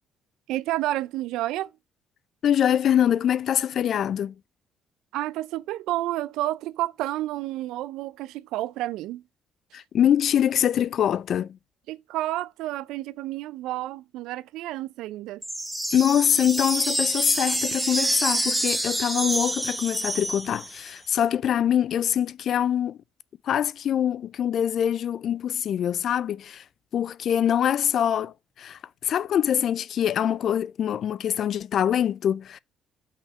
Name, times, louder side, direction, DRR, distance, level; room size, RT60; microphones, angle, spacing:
voice 1, 0.5-1.7 5.1-9.2 11.9-15.4, right 15 dB, 85° right, 0.4 m, -30 dB
voice 2, 2.4-4.3 9.7-11.6 15.9-23.0 23.4-26.6 26.9-32.6, left 9 dB, 55° left, 0.4 m, -24 dB
sound 1, 15.4-20.9, right 1 dB, 5° right, 0.9 m, -27 dB
5.6 x 3.5 x 5.8 m
cardioid pair, 105°, 0 cm